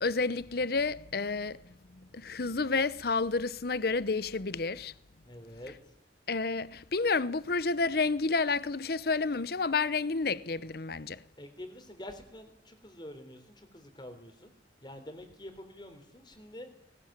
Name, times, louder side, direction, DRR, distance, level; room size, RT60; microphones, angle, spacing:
voice 1, 0.0-1.6 1.9-4.9 6.3-11.2, left 4 dB, 60° left, 0.8 m, -30 dB
voice 2, 5.2-5.7 11.4-14.5 14.8-16.7, left 1 dB, 25° left, 3.7 m, -47 dB
21.0 x 18.5 x 8.9 m
head